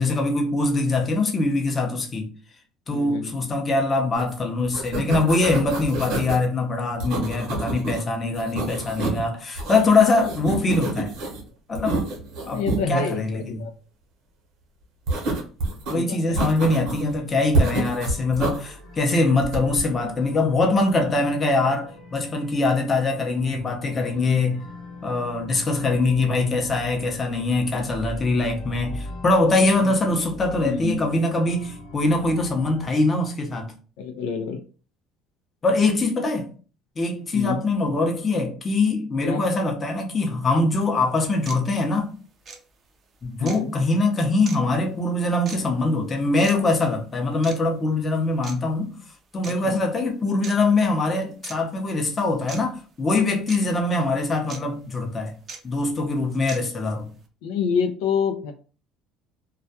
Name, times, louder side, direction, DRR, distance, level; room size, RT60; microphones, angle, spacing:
voice 1, 0.0-2.3 2.9-11.1 11.7-12.0 12.5-12.6 12.9-13.6 15.9-24.6 25.0-33.7 35.6-36.5 37.0-42.1 43.2-49.0 49.3-55.3 55.6-57.1, left 2 dB, 25° left, 0.6 m, -23 dB
voice 2, 2.9-3.4 12.4-13.7 15.9-16.4 24.1-24.4 29.8-29.9 30.6-31.1 34.0-34.6 37.3-37.6 39.2-39.4 43.4-43.7 49.6-49.8 57.4-58.5, left 5 dB, 90° left, 0.4 m, -27 dB
sound 1, 4.2-4.4 4.6-6.4 7.0-8.0 8.3-9.3 9.6-11.4 11.8-12.8 15.1-15.9 16.4-17.1 17.5-18.6 19.4-19.8, right 2 dB, 70° right, 0.8 m, -27 dB
sound 2, 16.7-32.9, left 1 dB, 50° left, 0.9 m, -41 dB
sound 3, 40.7-40.8 41.4-41.6 42.4-42.6 43.4-43.6 44.4-44.6 45.4-45.6 46.4-46.5 47.4-47.6 48.4-48.5 49.4-49.5 50.4-50.6 51.4-51.6 52.5-52.6 53.5-53.6 54.5-54.6 55.5-55.6 56.5-56.6, right 4 dB, 35° right, 0.4 m, -37 dB
2.2 x 2.1 x 2.7 m
cardioid pair, 130°, 0 cm